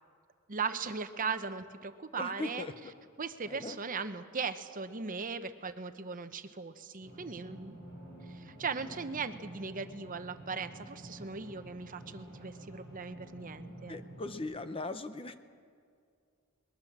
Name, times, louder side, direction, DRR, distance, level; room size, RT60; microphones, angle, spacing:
voice 1, 0.5-2.6 3.2-7.8 8.3-14.0, right 5 dB, 40° right, 10 dB, 0.9 m, -38 dB
voice 2, 2.2-2.9 3.5-3.8 8.8-8.9 13.9-15.4, left 2 dB, 25° left, 10 dB, 0.8 m, -39 dB
sound 1, 7.0-14.4, right 1 dB, 60° left, 6.1 m, -50 dB
21.5 x 21.0 x 7.3 m, 2.2 s
head